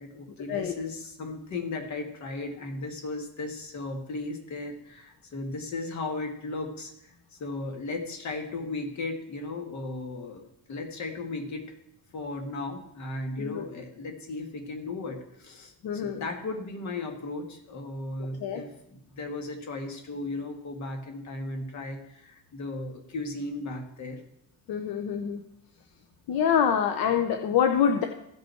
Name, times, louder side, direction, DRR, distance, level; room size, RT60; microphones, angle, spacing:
voice 1, 0.0-11.7 12.1-24.2, left 2 dB, 45° left, 4 dB, 1.7 m, -36 dB
voice 2, 15.8-16.2 18.4-18.6 24.7-25.4 26.3-28.0, left 8 dB, 65° left, 5 dB, 0.8 m, -25 dB
16.0 x 5.4 x 4.5 m, 0.81 s
cardioid pair, 175°, 39 cm